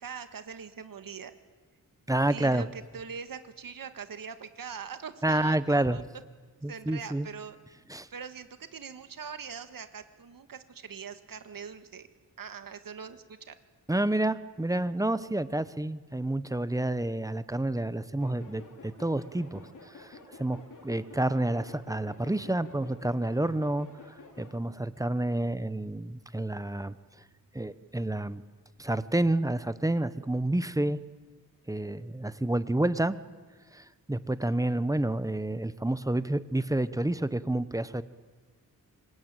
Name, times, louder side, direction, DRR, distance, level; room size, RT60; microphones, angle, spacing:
voice 1, 0.0-1.3 2.3-6.0 6.7-7.6 8.1-12.1 12.4-13.5, right 6 dB, 70° right, 9 dB, 1.7 m, -42 dB
voice 2, 2.1-2.7 5.2-6.0 6.6-7.3 7.9-8.1 13.9-23.9 24.4-27.0 27.5-28.4 28.8-31.0 31.7-33.2 33.7-38.0, right 1 dB, 10° right, 14 dB, 0.8 m, -29 dB
sound 1, 18.2-24.5, left 3 dB, 60° left, 3.7 m, -50 dB
26.0 x 21.0 x 8.9 m, 1.4 s
wide cardioid pair, 135°, 35 cm